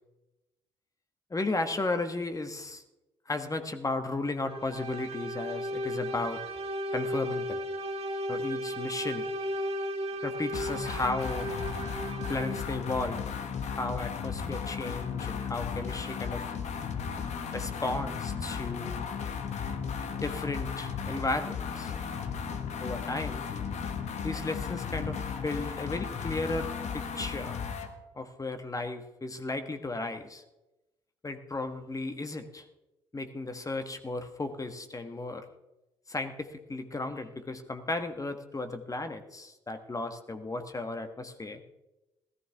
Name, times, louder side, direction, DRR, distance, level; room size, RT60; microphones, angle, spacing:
voice 1, 1.3-2.8 3.3-6.4 6.9-7.6 8.3-9.3 10.2-11.5 12.3-13.2 13.6-16.4 17.5-19.0 20.1-21.9 22.8-23.4 24.2-26.7 26.9-27.6 28.1-30.4 31.2-32.6 33.1-35.4 36.1-41.6, left 2 dB, 25° left, 7 dB, 1.4 m, -34 dB
sound 1, 4.4-12.8, equal, 45° right, 2.1 m, -35 dB
sound 2, 10.5-27.9, left 6 dB, 55° left, 1.5 m, -35 dB
17.0 x 14.0 x 3.5 m, 0.98 s
hypercardioid pair, 45°, 14 cm